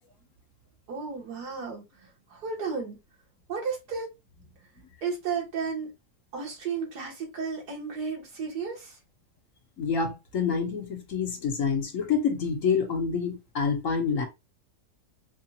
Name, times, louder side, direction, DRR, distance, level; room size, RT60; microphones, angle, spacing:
voice 1, 0.9-3.0 3.5-4.1 4.4-4.5 5.0-5.9 6.3-9.0, right 5 dB, 85° right, 2.3 m, -33 dB
voice 2, 9.8-14.3, left 6 dB, 60° left, 1.3 m, -27 dB
4.8 x 2.5 x 2.8 m
omnidirectional pair, 1.7 m